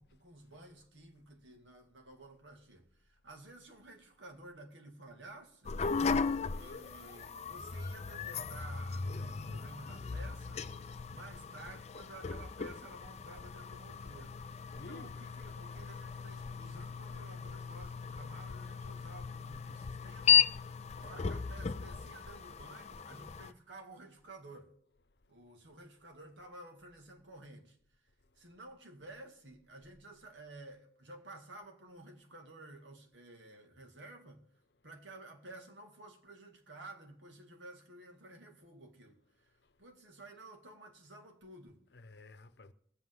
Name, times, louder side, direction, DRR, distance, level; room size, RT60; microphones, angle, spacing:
voice 1, 0.0-5.8 6.5-10.7 11.1-20.4 21.0-24.7 25.3-27.8 28.4-34.5 34.8-41.8, right 2 dB, 90° right, 2.0 m, -53 dB
sound 1, 5.6-23.5, left 6 dB, 35° left, 0.4 m, -36 dB
voice 2, 14.7-15.3 21.0-21.1 39.6-39.7 41.9-42.7, left 2 dB, 65° left, 0.8 m, -53 dB
22.0 x 8.0 x 3.8 m
head